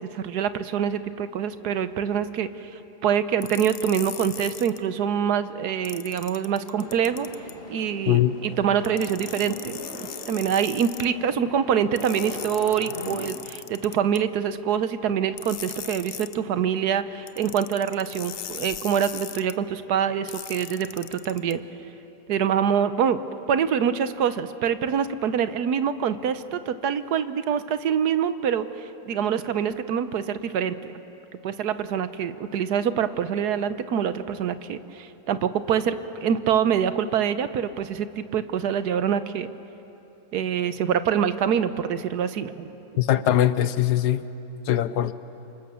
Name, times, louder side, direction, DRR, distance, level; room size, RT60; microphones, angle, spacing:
voice 1, 0.0-2.7 3.0-7.3 7.7-21.6 22.3-23.2 23.5-31.0 31.4-39.5 40.3-42.7, right 8 dB, 80° right, 12 dB, 1.4 m, -25 dB
sound 1, 3.4-4.8 5.8-7.5 8.8-11.1 12.0-14.2 15.4-16.4 17.3-19.5 20.3-21.5, left 9 dB, 55° left, 0.7 m, -38 dB
sound 2, 6.8-13.3, left 2 dB, 35° left, 2.4 m, -40 dB
voice 2, 43.0-44.2 44.7-45.1, left 12 dB, 90° left, 14 dB, 1.4 m, -21 dB
28.5 x 25.5 x 7.1 m, 3.0 s
omnidirectional pair, 1.7 m